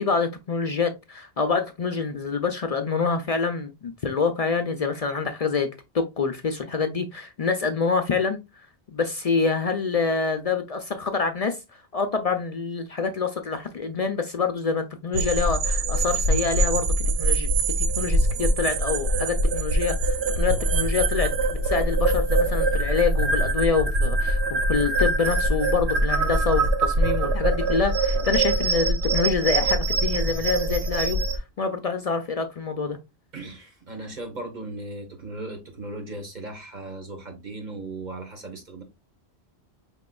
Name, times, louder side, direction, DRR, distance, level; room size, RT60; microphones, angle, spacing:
voice 1, 0.0-8.4 8.9-17.5 17.8-21.3 21.6-33.0, left 5 dB, 55° left, 0.4 m, -26 dB
sound 1, 15.1-31.4, right 2 dB, 75° right, 0.9 m, -23 dB
voice 2, 33.3-38.8, right 2 dB, 45° right, 1.2 m, -37 dB
5.1 x 3.6 x 2.2 m
omnidirectional pair, 1.1 m